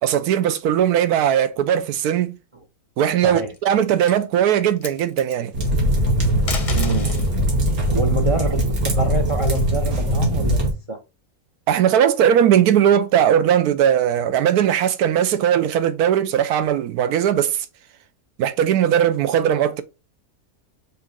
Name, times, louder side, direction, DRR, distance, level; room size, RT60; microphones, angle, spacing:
voice 1, 0.0-2.4 3.0-5.5 11.7-17.7 18.4-19.8, right 9 dB, 85° right, 1.1 m, -19 dB
sound 1, 3.1-3.6 4.0-4.2 4.6-5.4 6.3-7.3 8.8-10.0, left 4 dB, 35° left, 0.6 m, -34 dB
sound 2, 5.5-10.7, equal, 70° right, 2.0 m, -20 dB
voice 2, 6.7-7.2 7.9-11.0, right 3 dB, 55° right, 0.3 m, -26 dB
5.4 x 2.6 x 3.7 m
omnidirectional pair, 1.6 m